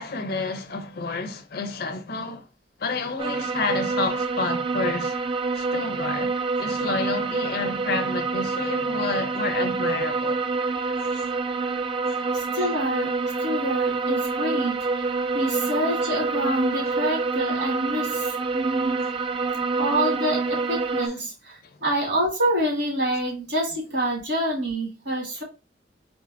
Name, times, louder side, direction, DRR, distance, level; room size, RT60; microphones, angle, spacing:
voice 1, 0.0-2.4 2.8-5.2 5.5-10.4 11.0-11.3 12.1-12.2 15.5-15.6 19.0-19.1 21.6-21.8 25.3-25.4, left 3 dB, 60° left, 0.6 m, -30 dB
sound 1, 3.2-21.1, right 4 dB, 30° right, 0.3 m, -27 dB
voice 2, 12.3-15.1 15.3-19.0 19.8-25.4, right 1 dB, 80° right, 2.1 m, -27 dB
3.9 x 3.2 x 2.5 m
head